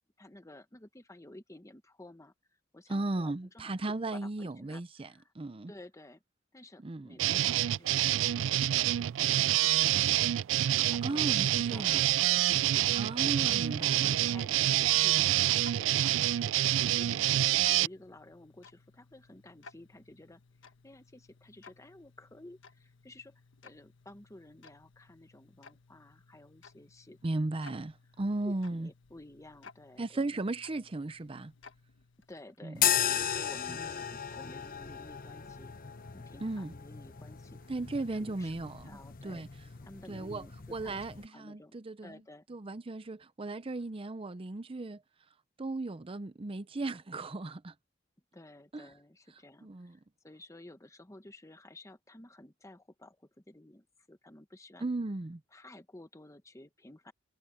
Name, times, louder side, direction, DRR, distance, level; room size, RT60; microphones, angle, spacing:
voice 1, 0.0-2.3 2.7-4.8 5.1-5.3 5.7-6.2 6.5-8.9 9.2-10.4 10.9-13.6 14.1-27.2 27.7-27.8 28.4-30.3 32.3-35.7 36.1-37.6 38.0-38.6 38.8-39.4 39.8-41.0 41.3-41.7 42.0-42.5 48.3-54.9 55.5-57.1, left 1 dB, 15° left, 1.2 m, -53 dB
voice 2, 2.9-5.7 6.8-7.2 11.0-12.1 12.9-14.2 27.2-28.9 30.0-31.5 32.6-32.9 36.4-36.7 37.7-39.5 40.1-42.2 42.5-45.0 45.6-47.7 48.7-48.9 49.6-50.0 54.8-55.4, right 2 dB, 30° right, 0.6 m, -36 dB
sound 1, 7.2-17.9, right 13 dB, 90° right, 0.3 m, -27 dB
Tick-tock, 14.3-32.6, left 4 dB, 90° left, 1.5 m, -59 dB
sound 2, 32.7-41.3, left 9 dB, 50° left, 1.0 m, -36 dB
head